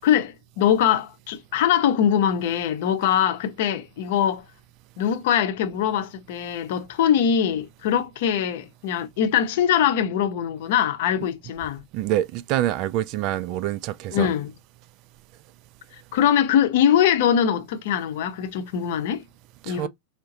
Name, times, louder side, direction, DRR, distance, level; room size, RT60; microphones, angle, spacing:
voice 1, 0.0-4.5 5.0-11.8 14.1-14.5 16.1-19.2 19.7-19.9, left 9 dB, 50° left, 0.7 m, -22 dB
voice 2, 11.9-14.3 19.7-19.9, right 13 dB, 40° right, 0.3 m, -26 dB
4.6 x 2.2 x 2.6 m
figure-of-eight pair, 90°, 0 cm